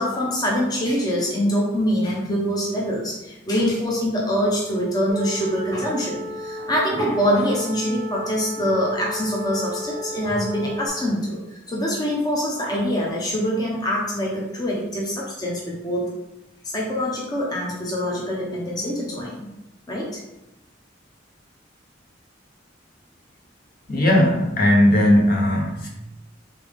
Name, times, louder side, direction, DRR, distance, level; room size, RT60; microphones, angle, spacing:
voice 1, 0.0-16.1 16.7-19.4 19.9-20.2, equal, 20° left, -3 dB, 0.7 m, -24 dB
sound 1, 5.1-10.9, left 1 dB, 80° left, 1.1 m, -34 dB
voice 2, 23.9-25.9, left 1 dB, 50° left, -2 dB, 0.9 m, -17 dB
3.6 x 3.4 x 3.5 m, 0.92 s
head